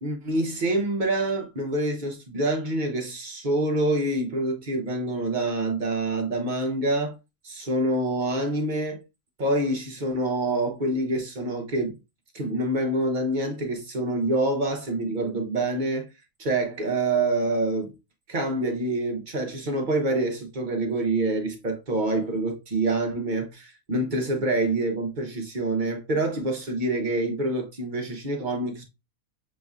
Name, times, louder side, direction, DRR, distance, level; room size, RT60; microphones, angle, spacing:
voice 1, 0.0-7.2 7.4-9.0 9.4-12.0 12.3-16.1 16.4-17.9 18.3-28.8, right 2 dB, 35° right, 1.0 m, -26 dB
6.8 x 3.1 x 2.4 m
omnidirectional pair, 1.5 m